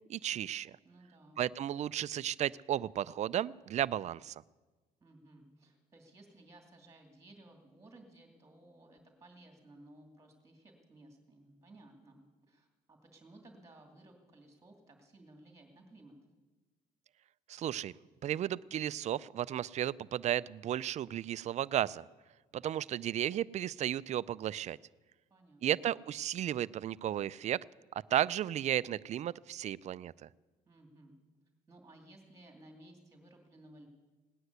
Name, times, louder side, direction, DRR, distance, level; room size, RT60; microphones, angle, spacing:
voice 1, 0.1-0.7 1.4-4.3 17.5-17.9 18.2-22.0 22.5-24.8 25.6-27.6 28.1-30.1, right 11 dB, 45° right, 18 dB, 0.4 m, -34 dB
voice 2, 0.8-1.4 5.0-16.2 25.3-25.9 30.7-31.2 31.7-33.9, right 1 dB, 20° right, 3 dB, 2.5 m, -58 dB
18.5 x 9.7 x 8.0 m, 1.3 s
cardioid pair, 110°, 17 cm